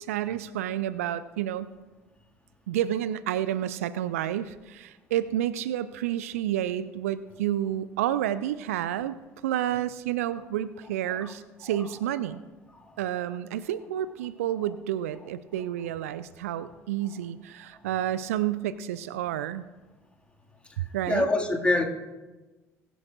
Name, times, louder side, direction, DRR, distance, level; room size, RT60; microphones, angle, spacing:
voice 1, 0.0-1.7 2.7-9.2 9.4-12.4 13.0-19.6 20.8-21.3, right 11 dB, 65° right, 16 dB, 0.4 m, -30 dB
voice 2, 21.1-21.8, left 2 dB, 15° left, 0 dB, 2.1 m, -25 dB
22.0 x 10.0 x 2.5 m, 1.2 s
figure-of-eight pair, 60°, 8 cm